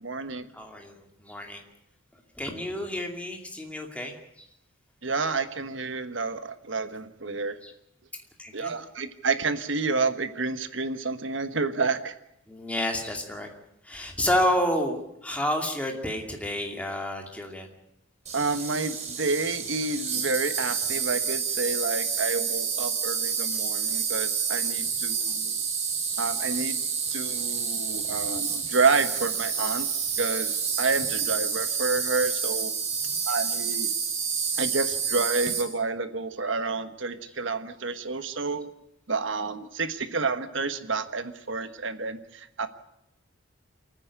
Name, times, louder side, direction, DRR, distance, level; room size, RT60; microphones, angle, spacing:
voice 1, 0.0-0.5 5.0-7.6 8.5-12.1 18.3-25.6 26.2-26.8 27.1-29.9 30.2-32.7 33.3-33.9 34.6-38.7 39.1-42.7, right 4 dB, 65° right, 10 dB, 1.4 m, -29 dB
voice 2, 0.5-1.6 2.4-4.1 7.6-7.7 8.4-8.7 12.5-13.5 13.8-17.7 26.1-26.2 33.0-33.2 34.4-34.5, left 1 dB, 5° left, 2 dB, 2.5 m, -30 dB
Insect, 18.3-35.6, right 6 dB, 35° right, 3.7 m, -29 dB
28.0 x 9.8 x 9.8 m, 0.84 s
head